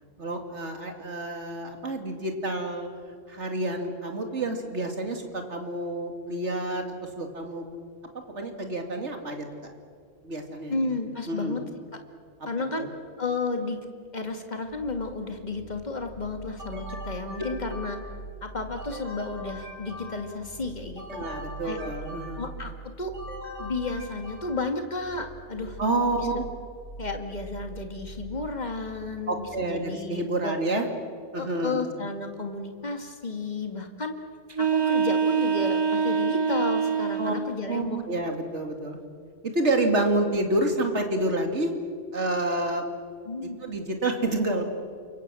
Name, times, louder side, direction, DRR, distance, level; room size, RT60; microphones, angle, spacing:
voice 1, 0.2-3.0 3.3-7.6 8.3-9.5 10.2-10.8 11.3-11.6 12.8-12.9 21.1-22.4 25.8-26.5 29.3-30.9 31.3-31.8 37.2-37.3 37.7-39.0 39.4-41.7 42.1-42.9 43.4-44.7, right 2 dB, 70° right, 4 dB, 2.9 m, -28 dB
voice 2, 10.7-11.6 12.5-12.9 13.2-13.8 14.1-18.0 18.4-21.2 21.6-21.8 22.4-23.1 23.6-25.8 26.2-26.3 27.0-30.5 31.4-34.1 34.6-38.0 43.2-43.6, left 3 dB, 35° left, 5 dB, 2.1 m, -32 dB
sound 1, 14.7-29.7, right 3 dB, 55° left, 3.9 m, -43 dB
sound 2, 16.6-18.3 18.8-20.5 21.0-22.6 23.1-24.8, left 1 dB, 85° right, 6.5 m, -42 dB
sound 3, 34.5-37.5, right 6 dB, 25° right, 0.8 m, -25 dB
28.5 x 23.5 x 7.6 m, 2.1 s
omnidirectional pair, 1.2 m